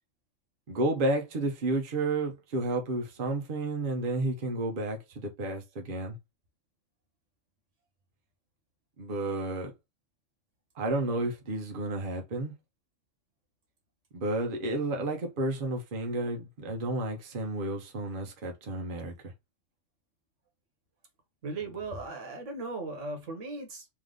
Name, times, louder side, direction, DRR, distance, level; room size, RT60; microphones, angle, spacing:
voice 1, 0.7-6.2 9.0-9.7 10.8-12.5 14.1-19.3, right 2 dB, 45° right, 1.0 m, -31 dB
voice 2, 21.4-23.9, right 3 dB, 75° right, 1.5 m, -37 dB
3.4 x 3.2 x 3.7 m
omnidirectional pair, 1.3 m